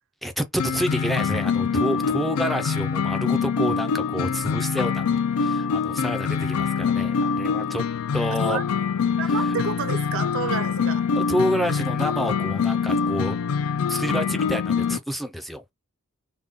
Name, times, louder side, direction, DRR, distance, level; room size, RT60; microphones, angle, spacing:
voice 1, 0.2-7.8 8.1-8.6 9.2-9.5 11.2-13.4 13.9-15.7, equal, ahead, 0.4 m, -28 dB
sound 1, 0.6-15.0, left 6 dB, 75° left, 0.4 m, -24 dB
voice 2, 9.2-11.0, right 6 dB, 60° right, 0.5 m, -30 dB
3.5 x 2.2 x 3.5 m
head